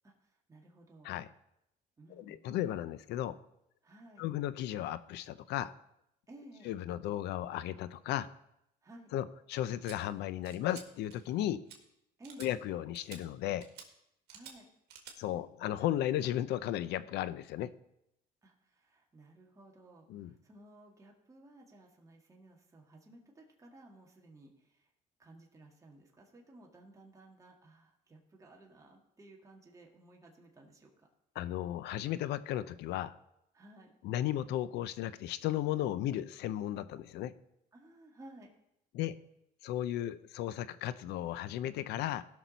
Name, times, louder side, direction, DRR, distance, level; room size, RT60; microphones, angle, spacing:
voice 1, 0.0-1.1 2.0-2.5 3.8-4.2 6.3-6.7 8.8-9.1 12.2-12.5 14.3-14.7 18.4-24.9 25.2-31.1 33.5-33.9 37.7-38.5, right 1 dB, 20° right, -1 dB, 1.9 m, -56 dB
voice 2, 2.2-3.4 4.2-5.7 6.7-8.3 9.1-11.6 12.4-13.7 15.2-17.7 20.1-20.3 31.4-33.1 34.0-37.3 38.9-39.2 39.6-42.2, left 12 dB, 80° left, 16 dB, 0.6 m, -35 dB
sound 1, 9.8-10.0 10.4-10.8 11.1-11.4 11.7-11.8 12.2-12.5 12.9-13.2 13.6-13.9 14.3-14.5 14.9-15.2, right 8 dB, 75° right, 1.8 m, -50 dB
17.0 x 6.1 x 4.0 m, 0.80 s
cardioid pair, 110°, 17 cm